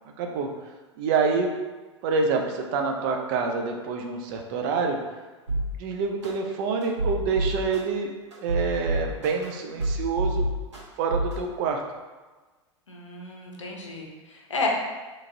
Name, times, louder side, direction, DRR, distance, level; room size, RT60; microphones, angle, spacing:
voice 1, 0.2-0.5 1.0-1.5 2.0-5.0 5.8-8.1 8.4-10.5 11.0-11.8, right 5 dB, 45° right, 2 dB, 0.4 m, -27 dB
sound 1, 5.5-5.6 6.2-6.3 6.8-7.8 8.3-9.4 9.8-10.8 11.1-11.3, right 2 dB, 75° right, 1.2 m, -26 dB
voice 2, 12.9-14.7, left 4 dB, 80° left, -1 dB, 0.6 m, -32 dB
3.0 x 2.4 x 2.6 m, 1.3 s
figure-of-eight pair, 90°, 15 cm